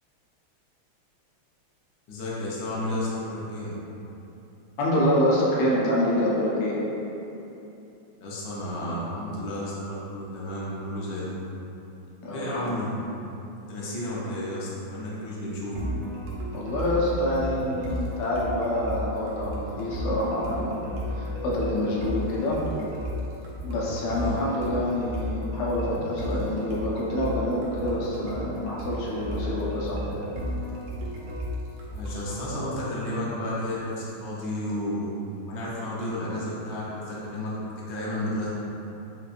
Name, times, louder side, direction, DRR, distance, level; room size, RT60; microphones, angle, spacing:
voice 1, 2.1-3.7 8.2-11.5 12.3-13.0 13.7-15.7 24.1-24.4 31.9-35.1 35.5-38.5, left 1 dB, 70° left, -7 dB, 1.4 m, -32 dB
voice 2, 4.8-6.8 12.2-12.8 16.5-20.8 21.1-22.6 23.6-30.0, left 1 dB, 90° left, -5 dB, 1.6 m, -26 dB
sound 1, 15.8-32.4, equal, 85° right, 1.6 m, -33 dB
5.2 x 2.2 x 2.4 m, 2.9 s
omnidirectional pair, 2.4 m